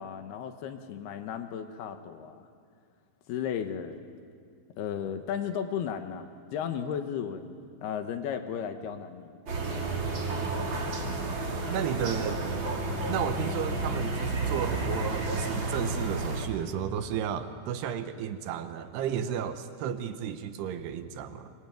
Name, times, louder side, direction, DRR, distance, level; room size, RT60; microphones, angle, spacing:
voice 1, 0.0-2.5 3.3-4.0 4.8-7.6 7.8-9.4 9.7-9.9, left 8 dB, 70° left, 8 dB, 2.8 m, -35 dB
sound 1, 9.5-16.5, right 2 dB, 30° right, 2.6 m, -31 dB
voice 2, 11.7-12.4 13.1-21.5, right 8 dB, 75° right, 10 dB, 2.7 m, -33 dB
25.5 x 22.0 x 9.2 m, 2.2 s
omnidirectional pair, 5.5 m